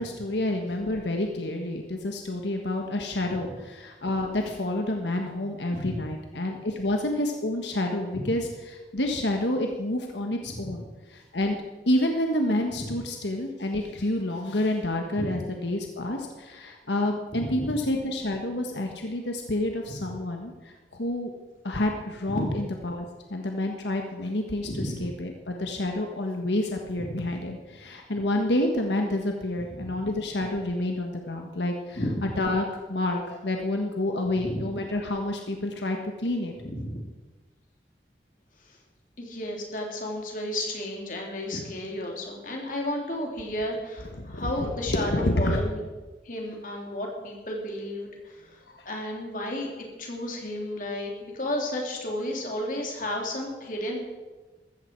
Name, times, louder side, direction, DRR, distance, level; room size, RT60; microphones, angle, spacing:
voice 1, 0.0-10.8 11.1-11.6 11.9-20.5 20.9-21.3 21.6-23.0 23.3-36.5 44.2-45.6 48.7-48.8, left 1 dB, 90° left, 3 dB, 1.5 m, -29 dB
voice 2, 10.4-10.7 12.8-12.9 15.1-15.4 17.3-17.7 19.9-20.1 22.3-22.6 24.6-25.0 27.0-27.3 29.7-29.8 31.9-32.2 34.3-34.7 36.6-37.0 38.7-38.8 39.2-45.8 46.2-49.7 50.0-54.0, left 1 dB, 50° left, 0 dB, 3.1 m, -33 dB
14.5 x 14.0 x 4.6 m, 1.2 s
head